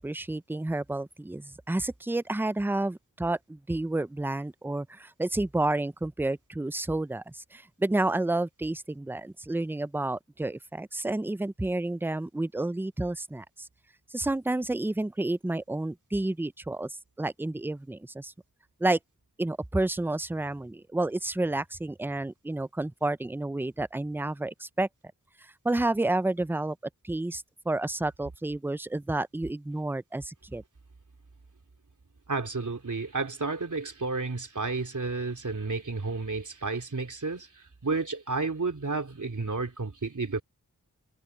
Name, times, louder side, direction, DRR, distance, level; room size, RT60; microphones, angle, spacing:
voice 1, 0.0-13.7 14.1-18.3 18.8-19.0 19.4-24.9 25.6-26.8 27.0-30.6, right 2 dB, 5° right, 0.5 m, -30 dB
voice 2, 32.3-40.4, right 3 dB, 55° right, 3.1 m, -31 dB
wide cardioid pair, 55°, 35 cm